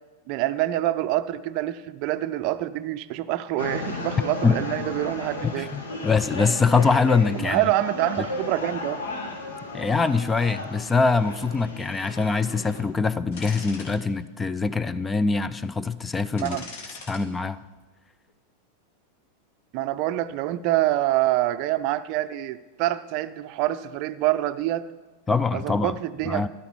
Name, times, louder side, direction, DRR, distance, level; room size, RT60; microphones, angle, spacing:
voice 1, 0.3-5.7 7.4-9.1 16.4-16.6 19.7-24.8 25.5-26.5, right 15 dB, 45° right, 13 dB, 0.5 m, -26 dB
sound 1, 3.6-12.8, left 2 dB, 70° left, 1.8 m, -34 dB
voice 2, 5.5-7.6 9.7-16.6 17.1-17.6 25.3-25.9 26.3-26.5, left 4 dB, 15° left, 15 dB, 0.4 m, -23 dB
sound 2, 13.3-13.9 14.4-14.5 16.4-17.2 17.6-17.8, left 3 dB, 50° left, 1.9 m, -40 dB
13.0 x 11.5 x 4.6 m, 1.3 s
figure-of-eight pair, 90°, 0 cm